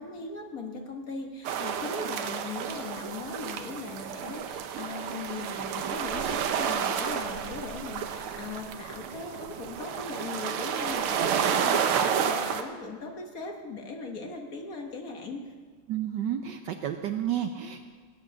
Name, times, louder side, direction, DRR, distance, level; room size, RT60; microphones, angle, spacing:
voice 1, 0.0-15.5, left 3 dB, 45° left, 3 dB, 1.5 m, -39 dB
sound 1, 1.4-12.6, right 8 dB, 85° right, 1.8 m, -30 dB
voice 2, 15.9-17.9, right 10 dB, 70° right, 7 dB, 1.1 m, -31 dB
17.5 x 8.5 x 6.4 m, 1.5 s
omnidirectional pair, 2.3 m